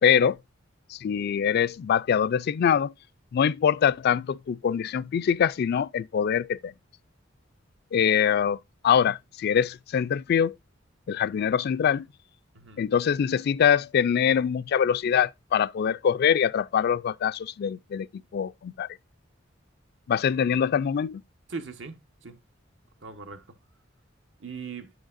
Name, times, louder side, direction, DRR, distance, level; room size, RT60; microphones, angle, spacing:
voice 1, 0.0-0.4 0.9-2.9 3.3-6.7 7.9-8.6 8.8-10.5 11.1-12.1 12.8-18.9 20.1-21.2, left 8 dB, 55° left, 0.3 m, -24 dB
voice 2, 12.5-12.9 21.5-22.4 23.0-23.5 24.4-24.9, right 5 dB, 70° right, 1.1 m, -39 dB
8.7 x 6.4 x 2.5 m
head